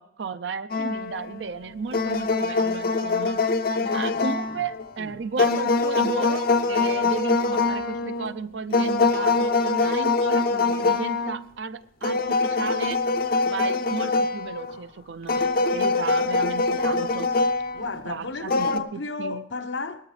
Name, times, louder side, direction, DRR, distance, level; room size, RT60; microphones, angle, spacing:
voice 1, 0.0-3.4 3.9-13.0 13.5-17.3 18.1-19.5, right 5 dB, 70° right, 0.6 m, -34 dB
sound 1, 0.7-1.4 1.9-4.9 5.4-8.3 8.7-11.4 12.0-14.8 15.3-17.9 18.5-18.8, left 3 dB, 55° left, 0.6 m, -24 dB
voice 2, 3.7-4.6 5.0-5.1 17.7-20.1, left 3 dB, 75° left, 0.9 m, -34 dB
19.0 x 13.0 x 3.2 m
head